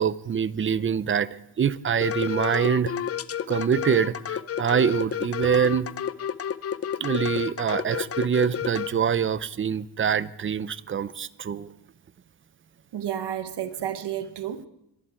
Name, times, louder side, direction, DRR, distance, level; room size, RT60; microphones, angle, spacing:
voice 1, 0.0-2.9 3.5-5.9 7.0-11.7, right 7 dB, 30° right, 0.5 m, -25 dB
sound 1, 2.0-8.9, left 9 dB, 35° left, 0.5 m, -30 dB
voice 2, 12.9-14.7, right 10 dB, 80° right, 1.3 m, -31 dB
25.0 x 11.0 x 4.5 m
wide cardioid pair, 145°, 41 cm